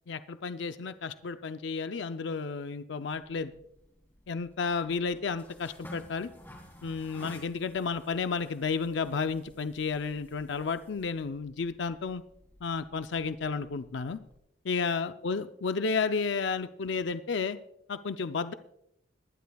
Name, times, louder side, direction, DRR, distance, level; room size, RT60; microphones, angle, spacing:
voice 1, 0.1-3.5 4.3-6.3 6.8-12.2 12.6-14.2 14.6-17.6 17.9-18.5, left 5 dB, 75° left, 10 dB, 0.5 m, -32 dB
sound 1, 3.2-14.4, equal, 10° left, 2.6 m, -54 dB
22.0 x 11.5 x 2.3 m, 0.79 s
head